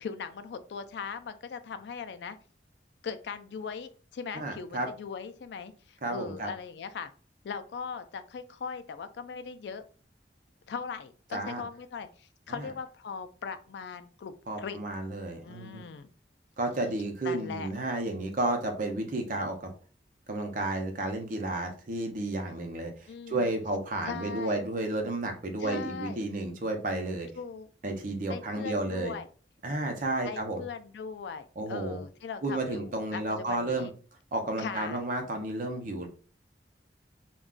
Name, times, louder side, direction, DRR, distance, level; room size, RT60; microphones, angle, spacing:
voice 1, 0.0-2.4 3.0-7.1 7.4-9.8 10.7-14.8 15.4-16.1 17.2-17.7 23.1-23.5 24.0-24.6 25.6-26.2 27.3-27.7 28.3-29.3 30.2-33.9 34.6-35.0, left 5 dB, 75° left, 10 dB, 0.4 m, -39 dB
voice 2, 4.3-4.9 6.0-6.5 11.3-11.6 12.6-12.7 14.5-15.9 16.6-19.7 20.3-22.9 23.3-27.3 27.8-29.2 29.6-30.6 31.6-32.0 32.4-33.9 34.3-36.1, right 2 dB, 50° right, 4 dB, 0.6 m, -32 dB
2.3 x 2.3 x 3.6 m, 0.39 s
head